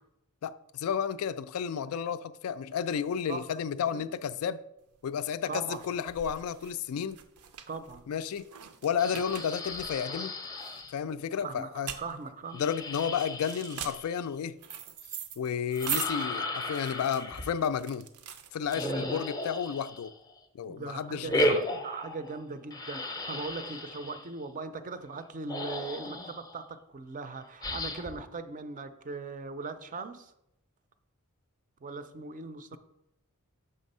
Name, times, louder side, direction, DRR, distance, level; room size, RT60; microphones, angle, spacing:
voice 1, 0.4-4.6 5.0-7.2 8.1-8.5 8.8-10.3 10.9-11.9 12.5-14.6 15.4-18.1 18.5-20.1 20.5-21.6, left 7 dB, 65° left, 0.3 m, -32 dB
sound 1, 4.9-19.3, right 8 dB, 90° right, 0.5 m, -42 dB
voice 2, 5.5-5.8 7.7-8.0 11.4-12.7 18.8-19.3 20.6-30.3 31.8-32.8, right 3 dB, 35° right, 0.4 m, -39 dB
sound 2, 9.0-10.9 12.5-14.3 15.7-17.6 18.7-20.3 21.3-22.4 22.7-24.3 25.2-25.3 25.5-26.6 27.6-28.2, left 1 dB, 15° left, 0.6 m, -35 dB
6.6 x 3.5 x 5.3 m
head